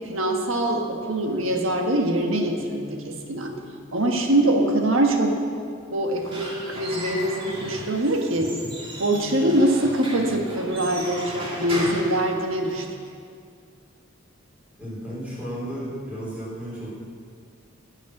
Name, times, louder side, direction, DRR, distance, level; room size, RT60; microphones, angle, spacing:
voice 1, 0.1-3.5 3.9-5.4 5.9-8.5 9.0-12.9, right 1 dB, 70° right, 2 dB, 1.5 m, -23 dB
Squeak / Wood, 6.0-13.0, equal, 25° right, 2.1 m, -35 dB
voice 2, 14.8-16.9, equal, 5° right, -8 dB, 4.0 m, -33 dB
18.5 x 6.5 x 6.0 m, 2.2 s
head